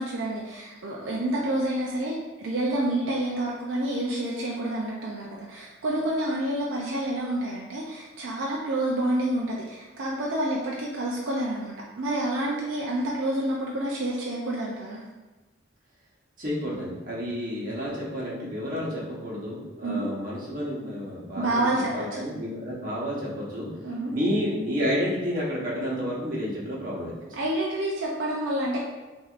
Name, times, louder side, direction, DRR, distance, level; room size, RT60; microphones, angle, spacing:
voice 1, 0.0-15.0 19.8-20.1 21.4-22.2 23.8-24.1 27.4-28.8, right 1 dB, 70° right, -3 dB, 0.5 m, -28 dB
voice 2, 16.4-23.7 24.1-27.4, equal, 45° right, -5 dB, 1.1 m, -30 dB
6.0 x 2.7 x 2.5 m, 1.2 s
head